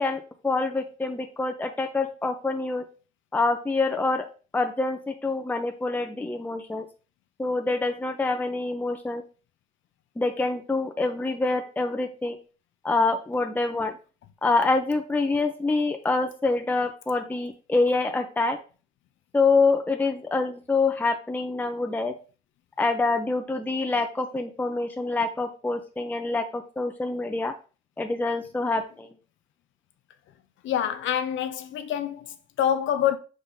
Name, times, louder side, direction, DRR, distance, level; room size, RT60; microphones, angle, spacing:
voice 1, 0.0-2.8 3.3-4.2 4.5-6.8 7.4-9.2 10.2-12.4 12.8-13.9 14.4-18.6 19.3-22.1 22.8-27.5 28.0-29.1, left 3 dB, 10° left, 0.6 m, -26 dB
voice 2, 30.6-33.2, left 9 dB, 75° left, 0.6 m, -26 dB
5.2 x 3.6 x 2.7 m
cardioid pair, 90°, 20 cm